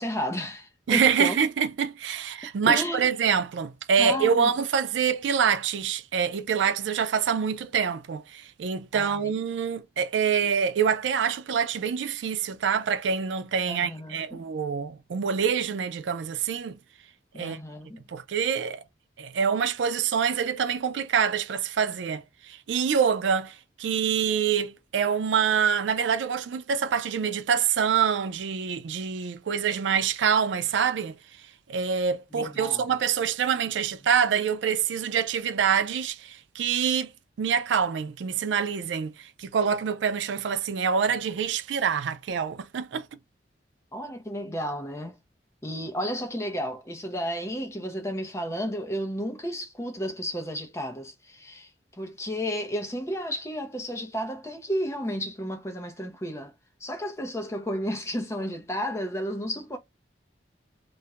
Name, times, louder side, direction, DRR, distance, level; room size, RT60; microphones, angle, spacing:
voice 1, 0.0-1.4 2.6-3.1 4.0-4.5 8.9-9.3 13.7-14.4 17.3-18.0 32.3-32.8 43.9-45.2 45.6-56.5 56.8-59.8, equal, 15° left, 0.5 m, -32 dB
voice 2, 0.9-16.8 17.4-17.6 18.1-18.8 19.2-31.2 31.7-37.1 37.4-43.1, right 7 dB, 85° right, 0.4 m, -26 dB
2.3 x 2.1 x 2.8 m
head